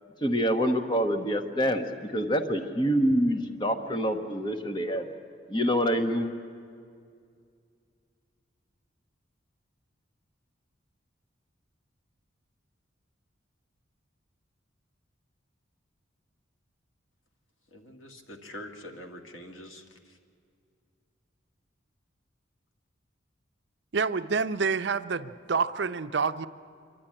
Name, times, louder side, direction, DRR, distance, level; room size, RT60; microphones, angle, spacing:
voice 1, 0.2-5.1 5.5-6.3, equal, 25° left, 7 dB, 1.1 m, -26 dB
voice 2, 17.7-20.2, left 1 dB, 90° left, 3 dB, 2.2 m, -45 dB
voice 3, 23.9-26.5, right 5 dB, 60° right, 11 dB, 0.6 m, -28 dB
26.0 x 12.0 x 10.0 m, 2.2 s
head